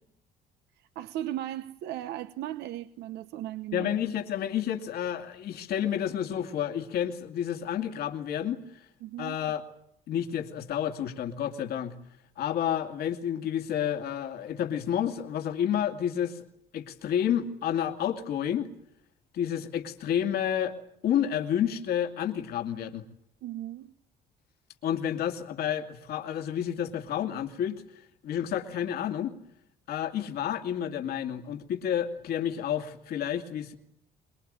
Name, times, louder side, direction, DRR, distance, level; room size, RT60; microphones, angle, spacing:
voice 1, 0.9-3.9 9.0-9.4 23.4-23.9, right 13 dB, 80° right, 11 dB, 1.1 m, -36 dB
voice 2, 3.7-8.9 9.2-9.6 10.1-11.9 12.4-16.4 16.7-18.7 19.3-20.8 21.0-23.0 24.8-29.3 29.9-33.8, left 9 dB, 70° left, 4 dB, 2.5 m, -30 dB
24.5 x 22.5 x 8.9 m, 0.73 s
cardioid pair, 110°, 17 cm